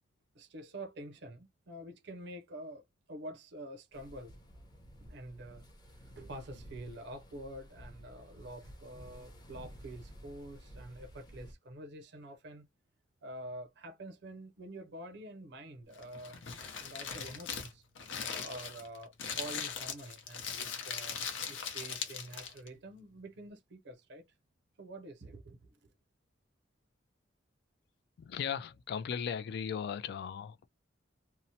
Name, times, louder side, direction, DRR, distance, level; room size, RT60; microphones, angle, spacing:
voice 1, 0.3-4.3 5.0-5.7 6.0-12.7 13.2-16.4 16.8-17.8 18.4-24.2 24.8-25.7, right 1 dB, 60° right, 0.5 m, -47 dB
sound 1, 3.9-11.5, equal, 20° left, 0.7 m, -53 dB
Crumpling crinkling, 15.9-22.7, left 7 dB, 80° left, 0.7 m, -40 dB
voice 2, 28.2-30.7, left 7 dB, 60° left, 0.3 m, -37 dB
2.8 x 2.0 x 2.6 m
head